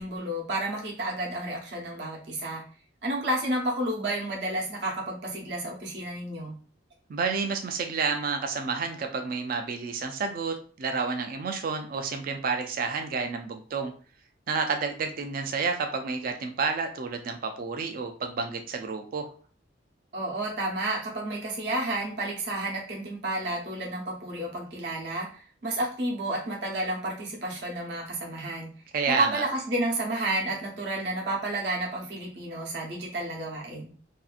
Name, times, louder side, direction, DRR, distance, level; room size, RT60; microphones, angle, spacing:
voice 1, 0.0-2.6 3.0-6.5 20.1-28.7 29.1-33.9, right 1 dB, 65° right, -2 dB, 0.9 m, -31 dB
voice 2, 7.1-13.9 14.5-19.3 28.9-29.4, right 4 dB, 50° right, 5 dB, 0.3 m, -30 dB
2.6 x 2.4 x 2.3 m, 0.41 s
head